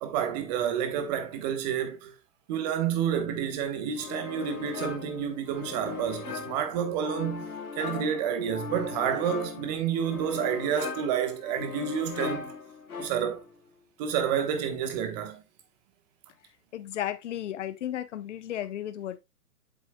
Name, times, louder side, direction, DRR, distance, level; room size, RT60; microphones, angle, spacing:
voice 1, 0.0-2.1 2.5-12.5 13.0-13.4 14.0-15.4, right 8 dB, 25° right, 1.2 m, -29 dB
sound 1, 4.0-13.5, left 6 dB, 70° left, 3.3 m, -38 dB
voice 2, 16.7-19.2, left 11 dB, 50° left, 0.8 m, -34 dB
7.6 x 7.5 x 2.3 m
hypercardioid pair, 145°, 45 cm